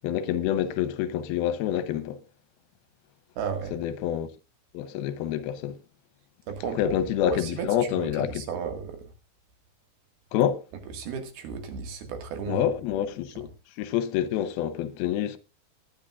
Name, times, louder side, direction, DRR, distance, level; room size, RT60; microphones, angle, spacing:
voice 1, 0.0-2.2 3.7-4.3 4.7-5.8 6.8-8.4 10.3-10.6 12.5-13.5 13.8-15.4, left 10 dB, 85° left, 2.7 m, -27 dB
voice 2, 3.4-3.7 6.5-7.0 7.2-7.7 8.0-9.1 10.9-12.6, right 6 dB, 90° right, 3.8 m, -34 dB
21.0 x 10.5 x 2.4 m
omnidirectional pair, 4.3 m